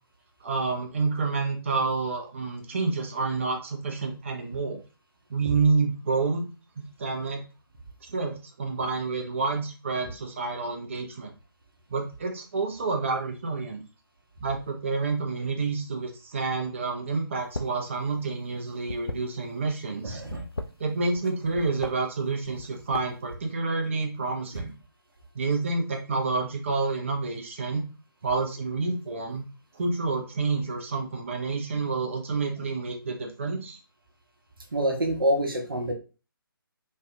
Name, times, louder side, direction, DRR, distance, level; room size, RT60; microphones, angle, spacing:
voice 1, 0.4-4.8 5.3-6.5 6.8-7.4 8.1-11.3 11.9-13.8 14.4-20.2 20.8-24.7 25.3-27.8 28.2-29.4 29.8-33.8, right 4 dB, 30° right, 2 dB, 0.6 m, -29 dB
sound 1, 17.4-17.8 18.1-19.7 20.2-21.3 21.5-21.9 22.4-23.3, left 2 dB, 85° left, 0.4 m, -36 dB
voice 2, 20.0-20.4 24.5-24.6 34.7-35.9, right 1 dB, 65° right, 3 dB, 0.9 m, -26 dB
3.2 x 2.3 x 2.7 m, 0.33 s
figure-of-eight pair, 145°, 12 cm